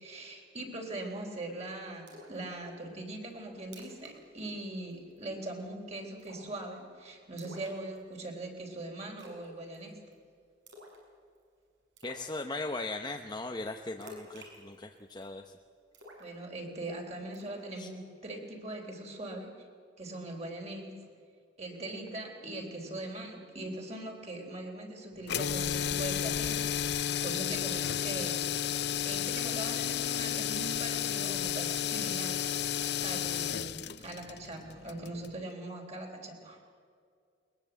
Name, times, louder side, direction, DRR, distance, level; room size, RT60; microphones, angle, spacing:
voice 1, 0.0-10.0 16.2-19.7 20.0-20.9 21.6-32.4 32.7-36.6, right 2 dB, 35° right, 1 dB, 3.8 m, -41 dB
Splash splatter, 2.1-2.4 2.8-2.9 3.3-3.4 3.6-4.1 4.4-4.6 4.9-5.3 6.2-6.6 7.4-8.3 9.2-9.5 9.7-10.1 10.7-11.0 11.4-11.5 12.0-12.3 14.0-15.3 15.9-16.9 17.3-17.6, equal, 75° right, 6.4 m, -50 dB
voice 2, 12.0-15.5 17.8-17.9, left 2 dB, 20° left, 3 dB, 0.8 m, -38 dB
sound 1, 25.2-35.4, left 9 dB, 60° left, 0.6 m, -32 dB
21.5 x 21.0 x 8.1 m, 2.3 s
head